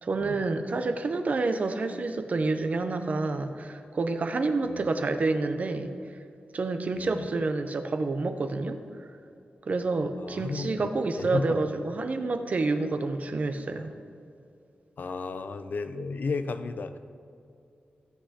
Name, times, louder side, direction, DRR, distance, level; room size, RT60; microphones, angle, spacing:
voice 1, 0.0-5.9 6.5-8.8 9.6-13.9, right 3 dB, 45° right, 8 dB, 0.5 m, -28 dB
voice 2, 6.9-7.3 10.2-10.9 11.1-11.6 15.0-17.0, left 4 dB, 60° left, 9 dB, 0.4 m, -33 dB
14.0 x 7.8 x 2.8 m, 2.5 s
wide cardioid pair, 155°, 3 cm